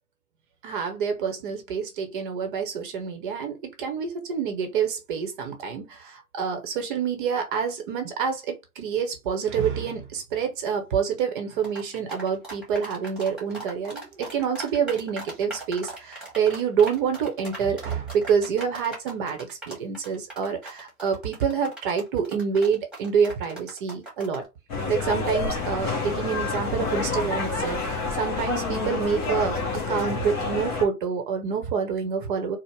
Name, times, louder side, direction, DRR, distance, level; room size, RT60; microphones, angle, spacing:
voice 1, 0.6-24.4 24.9-32.6, right 6 dB, 35° right, 0.8 m, -27 dB
sound 1, 11.6-24.5, right 2 dB, ahead, 1.4 m, -39 dB
sound 2, 24.7-30.8, left 3 dB, 15° left, 0.5 m, -28 dB
4.4 x 2.1 x 3.2 m
hypercardioid pair, 145°, 45 cm